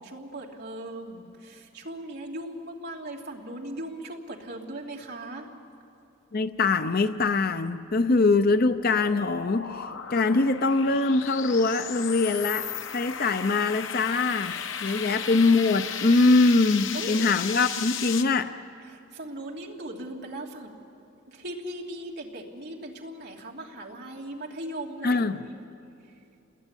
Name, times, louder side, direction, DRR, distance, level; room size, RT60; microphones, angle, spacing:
voice 1, 0.0-5.5 14.8-15.1 16.9-17.1 18.9-20.7 21.3-25.6, right 1 dB, 55° right, -1 dB, 3.0 m, -38 dB
voice 2, 6.3-9.8 10.1-18.5 25.0-25.4, left 3 dB, 45° left, 10 dB, 0.6 m, -23 dB
sound 1, 7.9-18.2, left 8 dB, 70° left, 1.0 m, -35 dB
29.0 x 20.5 x 9.8 m, 2.7 s
head